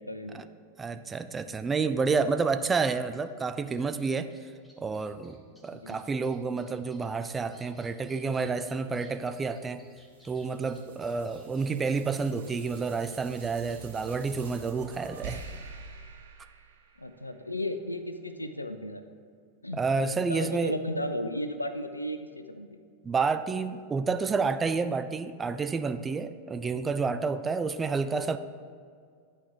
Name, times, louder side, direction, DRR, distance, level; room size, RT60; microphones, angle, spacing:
voice 1, 0.1-0.4 5.7-6.0 17.0-19.0 19.6-19.8 20.2-22.8, left 1 dB, 85° left, 8 dB, 0.4 m, -34 dB
voice 2, 0.8-4.3 4.8-9.8 10.2-15.4 19.7-20.8 23.0-28.4, right 4 dB, 15° right, 10 dB, 0.3 m, -29 dB
sound 1, 3.1-3.2 3.7-14.5, right 1 dB, ahead, 1.1 m, -60 dB
sound 2, 8.8-17.4, right 4 dB, 65° right, 0.7 m, -47 dB
10.5 x 4.5 x 3.5 m, 2.2 s
figure-of-eight pair, 90°, 0 cm